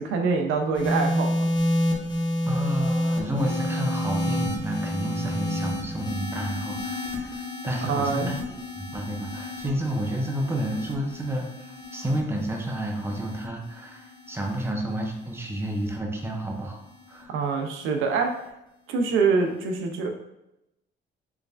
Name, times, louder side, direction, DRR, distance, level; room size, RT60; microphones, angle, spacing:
voice 1, 0.0-1.5 7.9-8.3 17.3-18.3 18.9-20.1, right 4 dB, 90° right, 4 dB, 0.6 m, -25 dB
sound 1, 0.7-17.2 18.1-18.5, left 1 dB, 20° left, 1.1 m, -30 dB
voice 2, 2.4-8.4 8.8-16.8 17.1-17.3, right 1 dB, 10° right, 1 dB, 0.8 m, -30 dB
4.6 x 3.1 x 2.4 m, 0.87 s
cardioid pair, 90°, 20 cm